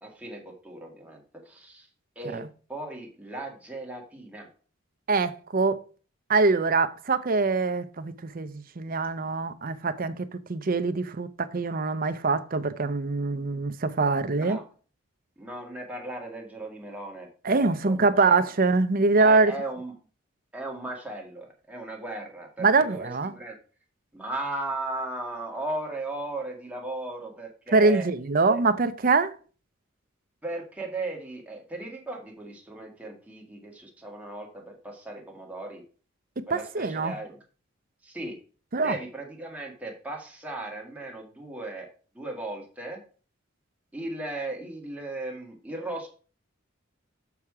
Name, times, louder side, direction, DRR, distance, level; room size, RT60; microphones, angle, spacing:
voice 1, 0.0-1.2 1.4-1.9 2.1-2.4 2.7-4.5 14.4-14.7 15.4-17.3 17.5-18.5 19.2-20.0 20.5-23.6 24.1-28.0 28.5-28.6 30.4-35.8 36.5-37.4 38.0-38.4 38.8-41.9 42.1-43.0 43.9-46.1, right 2 dB, 5° right, 1.8 m, -36 dB
voice 2, 5.1-5.8 6.3-14.6 17.4-19.5 22.6-23.3 27.7-29.3 36.4-37.2 38.7-39.0, right 3 dB, 45° right, 0.6 m, -24 dB
7.0 x 5.8 x 4.8 m
head